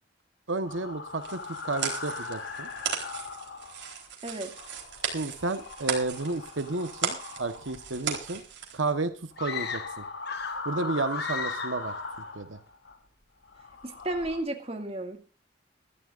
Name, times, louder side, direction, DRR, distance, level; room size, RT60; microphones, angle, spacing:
voice 1, 0.5-2.7 5.1-8.4 8.7-9.1 9.4-10.0 10.6-11.9 12.3-12.6, right 3 dB, 90° right, 9 dB, 1.3 m, -32 dB
sound 1, 0.7-4.1 4.4-8.4 9.3-13.0 13.4-14.4, left 3 dB, 85° left, 2.8 m, -40 dB
sound 2, 1.2-8.8, right 7 dB, 65° right, 4.1 m, -36 dB
voice 2, 4.2-4.5 13.8-15.2, right 1 dB, 30° right, 4 dB, 2.3 m, -33 dB
sound 3, 9.4-10.7 11.1-11.9, left 6 dB, 60° left, 1.6 m, -36 dB
22.5 x 13.5 x 2.6 m, 0.35 s
head